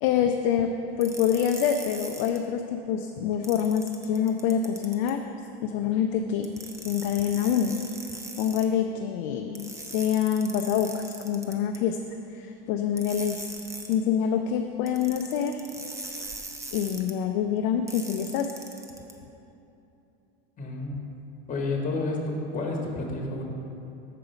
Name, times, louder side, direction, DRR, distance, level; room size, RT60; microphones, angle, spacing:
voice 1, 0.0-5.2 5.6-6.5 6.8-7.8 8.4-12.0 12.3-13.5 13.9-15.6 16.7-18.5, left 8 dB, 45° left, 5 dB, 0.5 m, -26 dB
sound 1, 1.0-2.4 3.4-5.1 6.4-8.7 9.6-11.8 13.0-14.0 14.9-17.1 17.9-19.1, right 2 dB, 10° right, 0.6 m, -40 dB
voice 2, 20.6-21.0 21.5-23.4, left 2 dB, 25° left, 0 dB, 1.5 m, -30 dB
6.8 x 4.9 x 7.0 m, 2.9 s
hypercardioid pair, 110°, 31 cm